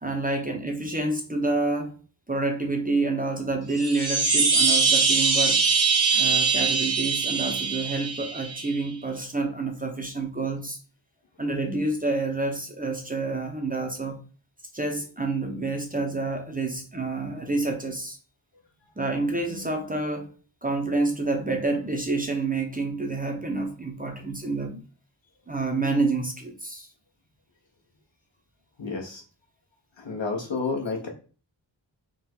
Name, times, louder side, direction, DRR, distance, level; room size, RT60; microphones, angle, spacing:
voice 1, 0.0-2.0 2.3-5.6 6.1-10.8 11.4-14.2 14.7-18.2 19.0-20.3 20.6-24.8 25.5-26.9, right 3 dB, 20° right, 0.7 m, -28 dB
sound 1, 3.7-8.7, right 5 dB, 75° right, 1.1 m, -22 dB
voice 2, 28.8-29.2 30.0-31.1, left 4 dB, 70° left, 1.3 m, -30 dB
3.7 x 2.4 x 4.4 m
wide cardioid pair, 105°, 47 cm